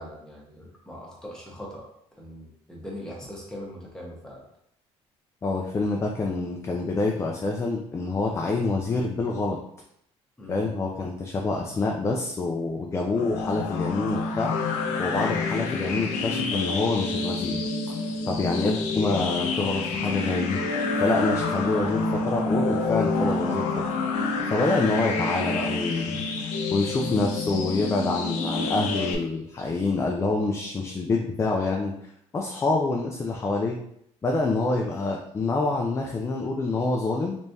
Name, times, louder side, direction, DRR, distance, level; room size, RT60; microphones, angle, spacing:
voice 1, 0.0-1.8 2.2-4.4 10.4-10.7, equal, 5° left, -4 dB, 1.2 m, -40 dB
voice 2, 5.4-9.6 10.5-17.6 17.9-20.6 21.0-23.7 24.2-31.9 32.3-33.8 34.2-37.4, left 3 dB, 25° left, 0 dB, 0.4 m, -27 dB
sound 1, 13.2-29.2, left 3 dB, 80° left, 0.6 m, -28 dB
3.4 x 3.2 x 2.7 m, 0.74 s
cardioid pair, 110°, 12 cm